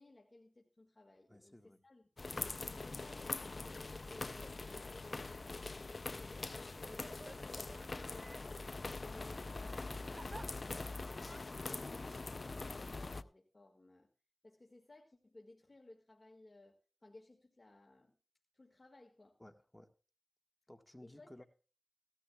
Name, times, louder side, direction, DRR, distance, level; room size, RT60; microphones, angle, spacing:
voice 1, 0.0-2.1 2.7-8.6 9.0-14.1 14.4-18.1 18.5-19.4 21.0-21.4, left 2 dB, 45° left, 1 dB, 1.7 m, -60 dB
voice 2, 1.3-1.8 19.4-19.9 20.7-21.4, left 1 dB, 15° left, 6 dB, 1.4 m, -57 dB
sound 1, 2.2-13.2, left 3 dB, 60° left, 0.5 m, -43 dB
Crying sobbing, 4.2-4.5 5.1-5.3 6.3-8.5 9.6-10.5 11.1-11.4, right 2 dB, 50° right, 0.6 m, -55 dB
17.5 x 13.0 x 2.3 m, 0.35 s
cardioid pair, 40°, 0 cm